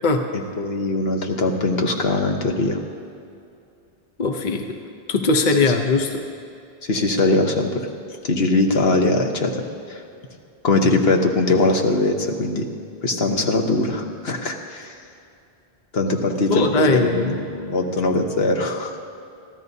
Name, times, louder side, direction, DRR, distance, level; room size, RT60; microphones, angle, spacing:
voice 1, 0.3-2.8 5.6-5.7 6.8-7.9 8.2-10.0 10.6-12.7 13.0-14.9 15.9-19.0, left 2 dB, 75° left, 3 dB, 1.3 m, -21 dB
voice 2, 4.2-4.8 5.1-6.3 16.5-17.4, left 3 dB, 50° left, 5 dB, 0.9 m, -20 dB
24.5 x 14.5 x 2.8 m, 2.5 s
omnidirectional pair, 1.0 m